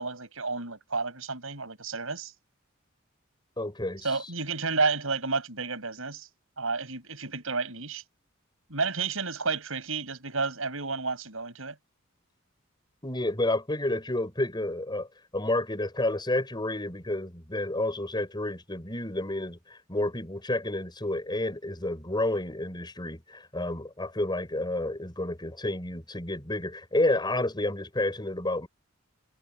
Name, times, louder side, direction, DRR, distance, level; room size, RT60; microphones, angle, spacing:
voice 1, 0.0-2.3 4.0-6.3 6.6-8.0 8.7-11.8, right 4 dB, 75° right, 7.7 m, -31 dB
voice 2, 3.6-4.1 13.0-15.1 15.3-28.7, left 1 dB, 20° left, 6.1 m, -30 dB
head